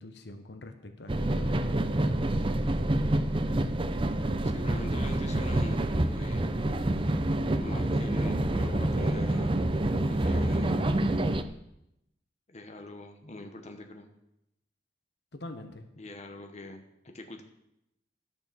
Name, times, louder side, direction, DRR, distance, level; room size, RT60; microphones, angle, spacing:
voice 1, 0.0-1.7 15.3-15.9, left 1 dB, 65° left, 7 dB, 1.1 m, -44 dB
sound 1, 1.1-11.4, right 1 dB, 30° right, 0.6 m, -27 dB
voice 2, 4.5-6.5 7.6-9.6 10.1-10.8 12.5-14.1 16.0-17.4, left 2 dB, 40° left, 5 dB, 1.1 m, -43 dB
11.0 x 6.8 x 6.9 m, 0.83 s
head